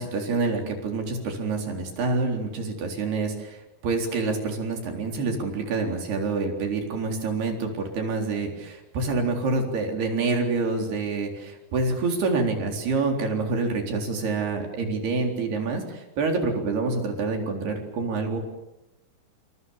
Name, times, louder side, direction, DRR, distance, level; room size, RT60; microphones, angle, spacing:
voice 1, 0.0-18.4, right 3 dB, 75° right, 3 dB, 6.0 m, -27 dB
27.5 x 27.0 x 7.3 m, 0.94 s
omnidirectional pair, 4.6 m